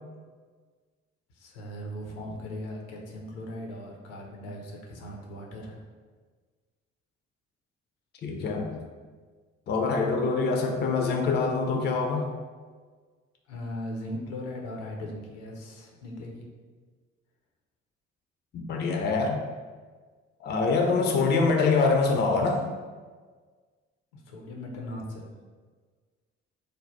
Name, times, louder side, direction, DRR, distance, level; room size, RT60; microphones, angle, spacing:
voice 1, 1.3-5.8 13.5-16.5 24.1-25.3, left 1 dB, 70° left, 0 dB, 0.7 m, -38 dB
voice 2, 8.2-8.7 9.7-12.3 18.5-19.4 20.4-22.6, left 4 dB, 30° left, 3 dB, 0.5 m, -25 dB
3.3 x 2.2 x 3.9 m, 1.5 s
figure-of-eight pair, 45°, 35 cm